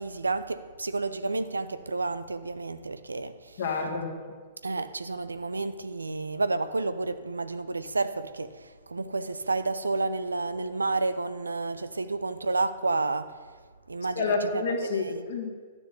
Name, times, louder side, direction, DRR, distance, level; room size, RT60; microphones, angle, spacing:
voice 1, 0.0-3.6 4.6-13.4 13.9-14.6 14.9-15.3, right 3 dB, 80° right, 0.7 m, -30 dB
voice 2, 3.6-4.1 14.2-15.5, left 4 dB, 60° left, 2.6 m, -28 dB
12.0 x 6.9 x 8.6 m
figure-of-eight pair, 110°, 0 cm